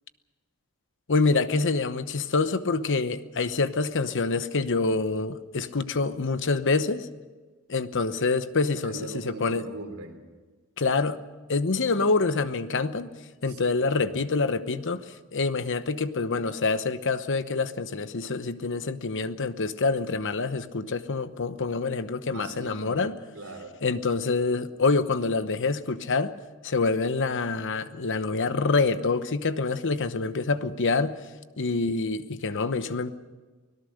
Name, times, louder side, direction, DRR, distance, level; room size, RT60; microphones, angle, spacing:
voice 1, 1.1-7.1 7.7-9.6 10.8-11.2 11.5-13.1 13.4-15.0 15.3-23.1 23.8-26.3 26.6-31.2 31.6-33.1, left 3 dB, 60° left, 12 dB, 1.0 m, -26 dB
voice 2, 8.8-10.2 13.5-14.1 22.2-23.1 23.3-23.8, right 2 dB, 80° right, 4 dB, 3.6 m, -40 dB
24.5 x 18.0 x 6.5 m, 1.3 s
head